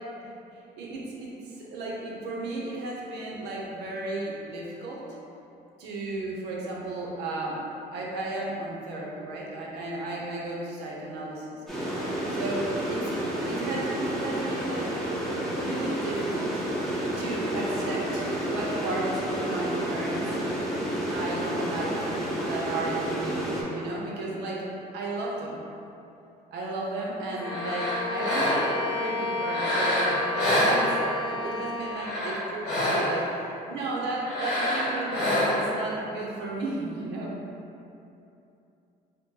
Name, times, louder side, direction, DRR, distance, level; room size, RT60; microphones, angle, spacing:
voice 1, 0.8-5.0 5.8-7.6 7.9-11.6 12.3-13.1 13.5-14.9 15.6-16.6 17.2-20.3 21.1-22.0 22.5-24.7 24.9-25.6 26.5-30.9 31.3-37.3, right 2 dB, 80° right, -3 dB, 0.6 m, -34 dB
sound 1, 11.7-23.6, right 1 dB, ahead, 0.7 m, -30 dB
Bowed string instrument, 27.3-32.2, left 2 dB, 30° left, 0.4 m, -32 dB
sound 2, 27.4-28.9 29.4-31.3 31.8-33.3 34.2-35.8, left 1 dB, 70° left, 1.1 m, -27 dB
2.8 x 2.1 x 3.6 m, 2.8 s
cardioid pair, 110°, 17 cm